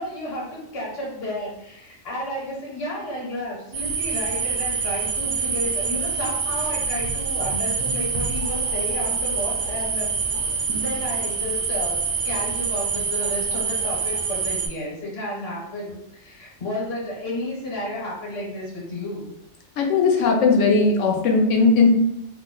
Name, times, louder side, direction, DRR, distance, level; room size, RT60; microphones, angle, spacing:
voice 1, 0.0-10.1 10.4-19.3, left 1 dB, 55° left, -3 dB, 1.2 m, -32 dB
sound 1, 3.7-14.7, right 5 dB, 70° right, 0.8 m, -26 dB
voice 2, 19.8-21.9, left 4 dB, 85° left, 1 dB, 1.0 m, -18 dB
2.7 x 2.1 x 3.7 m, 0.83 s
omnidirectional pair, 1.3 m